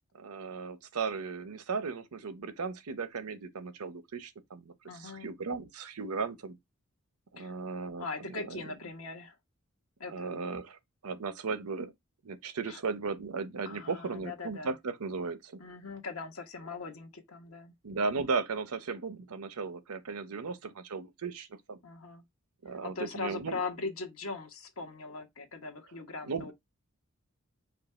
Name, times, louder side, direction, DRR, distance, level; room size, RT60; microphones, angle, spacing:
voice 1, 0.1-6.6 7.3-8.6 10.1-10.8 11.0-11.9 12.2-15.6 17.8-21.8 22.6-23.6 26.3-26.5, right 4 dB, 90° right, 0.7 m, -36 dB
voice 2, 4.8-5.3 7.4-7.5 8.0-9.3 10.0-10.4 12.7-12.8 13.7-14.7 15.6-17.7 21.8-22.2 22.8-26.5, left 4 dB, 80° left, 1.2 m, -40 dB
5.3 x 2.3 x 4.2 m
head